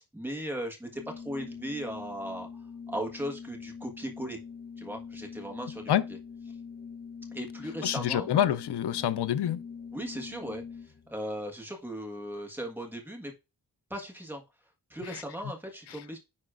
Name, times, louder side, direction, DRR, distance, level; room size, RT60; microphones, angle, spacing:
voice 1, 0.0-2.5 2.9-4.4 4.8-5.9 7.3-8.3 9.9-13.3 13.9-14.4 14.9-16.2, equal, 5° right, 1.5 m, -37 dB
Organ, 0.9-11.1, left 6 dB, 25° left, 0.5 m, -44 dB
voice 2, 7.8-9.6 15.1-15.2, left 10 dB, 90° left, 0.5 m, -27 dB
10.0 x 4.0 x 2.5 m
wide cardioid pair, 125°, 39 cm